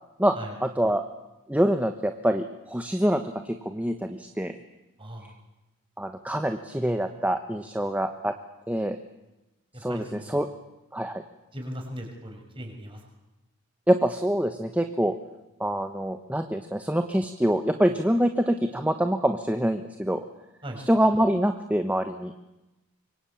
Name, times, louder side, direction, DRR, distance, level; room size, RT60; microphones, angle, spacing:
voice 1, 0.6-1.0 1.5-4.6 6.0-8.3 8.7-9.0 9.8-10.5 10.9-11.2 13.9-15.1 15.6-20.2 20.9-22.3, right 1 dB, 5° right, 7 dB, 1.1 m, -25 dB
voice 2, 5.0-5.3 9.9-10.3 11.5-13.0 20.6-20.8, equal, 25° right, 2 dB, 6.1 m, -38 dB
25.5 x 23.0 x 8.7 m, 0.98 s
head